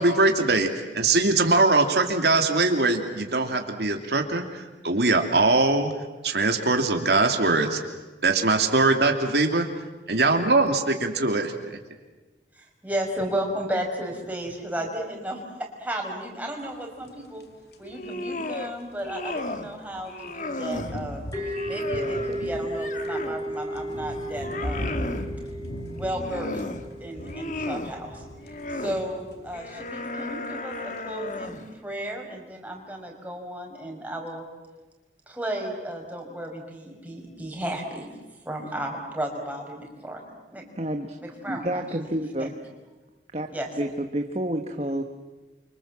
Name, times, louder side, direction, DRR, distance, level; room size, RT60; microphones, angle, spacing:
voice 1, 0.0-5.9 6.2-7.8 8.2-9.7 10.1-11.8, right 3 dB, 70° right, 4 dB, 2.8 m, -22 dB
voice 2, 12.5-15.4 15.8-17.4 17.8-21.2 21.7-25.0 25.9-26.6 27.0-28.2 28.8-34.4 35.3-38.1 38.4-40.2 40.5-40.6 41.2-42.1 42.4-42.5 43.5-43.7, right 1 dB, 10° right, 0 dB, 5.2 m, -33 dB
sound 1, 17.0-18.5 18.8-31.1 31.5-31.6, equal, 70° left, 2.7 m, -39 dB
sound 2, 17.8-18.7 19.0-19.7 20.1-21.0 21.4-23.5 23.9-25.3 26.0-26.8 27.2-27.9 28.4-29.0 29.5-31.7, left 2 dB, 45° left, 1.7 m, -35 dB
sound 3, 21.3-28.9, equal, 20° left, 6.7 m, -35 dB
voice 3, 40.8-41.2 41.5-42.5 43.3-43.5 43.8-45.0, right 1 dB, 35° right, 5 dB, 1.4 m, -29 dB
29.5 x 25.5 x 7.6 m, 1.2 s
head